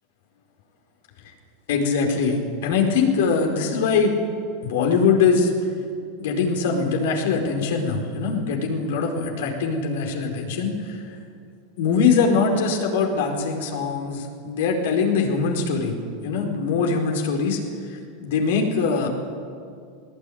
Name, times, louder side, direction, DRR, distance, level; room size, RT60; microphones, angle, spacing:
voice 1, 1.7-4.2 4.6-5.5 6.2-11.0 11.8-17.6 17.9-19.1, left 5 dB, 70° left, 2 dB, 4.7 m, -22 dB
20.5 x 19.0 x 9.5 m, 2.3 s
hypercardioid pair, 95°, 0 cm